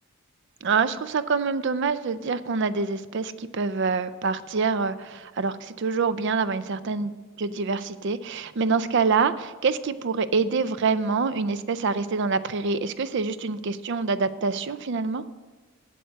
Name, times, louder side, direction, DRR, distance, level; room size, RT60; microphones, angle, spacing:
voice 1, 0.6-15.2, right 4 dB, 55° right, 14 dB, 0.4 m, -26 dB
7.9 x 7.8 x 6.5 m, 1.3 s
head